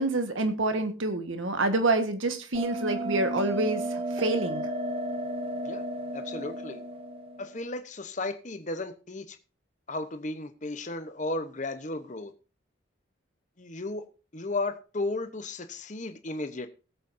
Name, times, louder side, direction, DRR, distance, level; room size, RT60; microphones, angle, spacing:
voice 1, 0.0-4.6, right 2 dB, 80° right, 1.5 m, -27 dB
Bell, 2.5-7.6, right 1 dB, 30° right, 1.0 m, -33 dB
voice 2, 6.1-6.8 7.4-9.4 9.9-12.3 13.6-14.0 14.3-16.7, left 2 dB, 40° left, 1.0 m, -34 dB
20.0 x 8.2 x 2.7 m
head